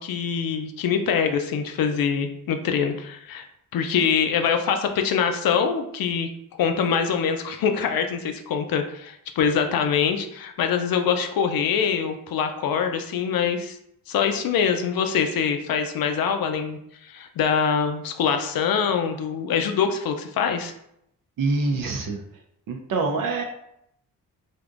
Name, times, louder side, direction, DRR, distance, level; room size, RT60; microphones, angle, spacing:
voice 1, 0.0-3.4 3.7-13.8 14.1-20.7, left 7 dB, 70° left, 6 dB, 0.5 m, -24 dB
voice 2, 21.4-22.2 22.7-23.4, right 3 dB, 65° right, 2 dB, 0.5 m, -25 dB
3.4 x 2.6 x 2.4 m, 0.75 s
cardioid pair, 85°, 36 cm